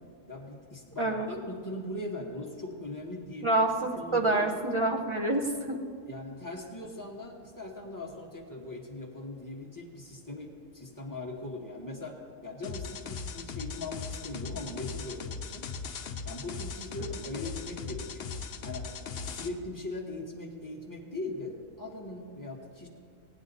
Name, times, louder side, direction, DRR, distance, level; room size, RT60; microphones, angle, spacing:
voice 1, 0.3-3.6 3.9-4.5 6.1-15.7 16.2-18.3 18.6-18.9 19.3-22.9, left 2 dB, 15° left, -1 dB, 1.4 m, -40 dB
voice 2, 1.0-1.3 3.4-5.8 17.0-17.1, right 2 dB, 25° right, 2 dB, 0.7 m, -27 dB
sound 1, 12.6-19.5, left 5 dB, 60° left, 0.9 m, -39 dB
17.5 x 9.3 x 4.0 m, 2.1 s
omnidirectional pair, 1.4 m